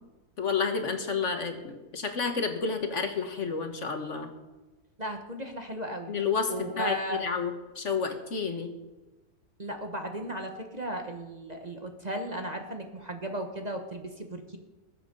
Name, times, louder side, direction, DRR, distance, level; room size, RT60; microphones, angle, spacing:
voice 1, 0.4-4.3 6.1-8.7, left 5 dB, 55° left, 6 dB, 1.5 m, -30 dB
voice 2, 5.0-6.1 6.5-7.2 9.6-14.6, right 1 dB, 30° right, 4 dB, 1.3 m, -35 dB
20.5 x 8.1 x 5.4 m, 1.1 s
omnidirectional pair, 1.6 m